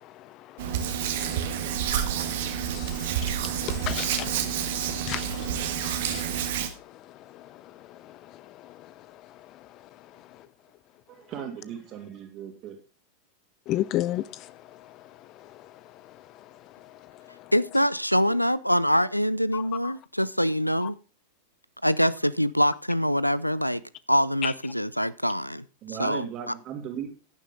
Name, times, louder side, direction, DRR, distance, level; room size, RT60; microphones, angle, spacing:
Hands, 0.6-6.7, right 8 dB, 55° right, 1.7 m, -29 dB
voice 1, 2.7-4.4 5.1-5.5 5.8-6.2 13.7-14.5 19.5-19.9 24.4-24.5, left 14 dB, 35° left, 0.5 m, -32 dB
voice 2, 11.1-12.8 25.8-27.1, right 9 dB, 35° right, 2.8 m, -37 dB
voice 3, 17.5-21.0 21.8-23.8 24.1-25.6 26.0-26.3, equal, 90° left, 0.5 m, -24 dB
11.0 x 10.5 x 3.9 m
figure-of-eight pair, 90°, 0 cm